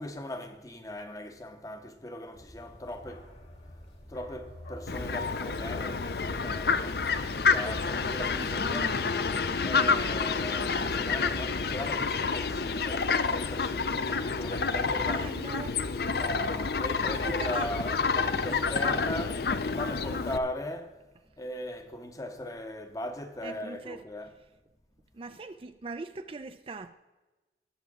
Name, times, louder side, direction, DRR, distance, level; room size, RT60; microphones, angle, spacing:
voice 1, 0.0-3.3 4.1-9.0 9.6-13.1 13.5-15.3 16.1-19.4 19.8-20.9 21.4-24.4, left 1 dB, 20° left, 1.0 m, -39 dB
Bark, 2.3-9.4, equal, 85° left, 4.0 m, -49 dB
Fowl, 4.9-20.4, left 4 dB, 60° left, 0.6 m, -29 dB
voice 2, 8.3-9.0 15.0-15.8 17.2-17.7 23.4-24.0 25.1-26.9, right 3 dB, 30° right, 0.4 m, -41 dB
Wind instrument woodwind instrument, 10.9-14.8, right 2 dB, 85° right, 1.7 m, -56 dB
19.5 x 7.1 x 3.6 m
head